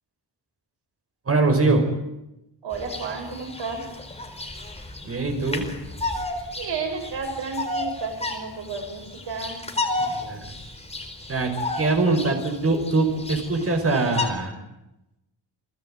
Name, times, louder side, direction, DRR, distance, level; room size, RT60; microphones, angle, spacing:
voice 1, 1.3-1.9 5.0-5.8 10.0-10.5 11.3-14.5, right 3 dB, 30° right, 5 dB, 5.7 m, -23 dB
voice 2, 2.6-3.9 6.2-9.6, right 4 dB, 75° right, 3 dB, 6.9 m, -32 dB
Bird vocalization bird call bird song, 2.7-14.3, left 2 dB, 15° left, 4.3 m, -33 dB
30.0 x 19.5 x 9.2 m, 0.92 s
wide cardioid pair, 165°, 43 cm